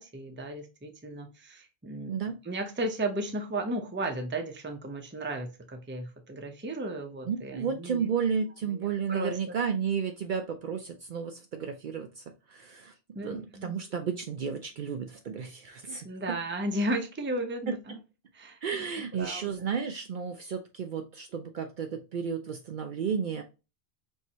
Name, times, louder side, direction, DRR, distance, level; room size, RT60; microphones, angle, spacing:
voice 1, 0.0-2.1 2.4-8.1 8.6-9.6 13.1-13.8 16.0-18.0 18.3-18.6 19.2-19.7, right 1 dB, 15° right, 4 dB, 0.6 m, -34 dB
voice 2, 7.3-12.9 13.2-16.1 17.7-17.8 18.6-23.4, right 6 dB, 60° right, 5 dB, 0.6 m, -32 dB
4.5 x 3.1 x 2.8 m, 0.29 s
omnidirectional pair, 1.1 m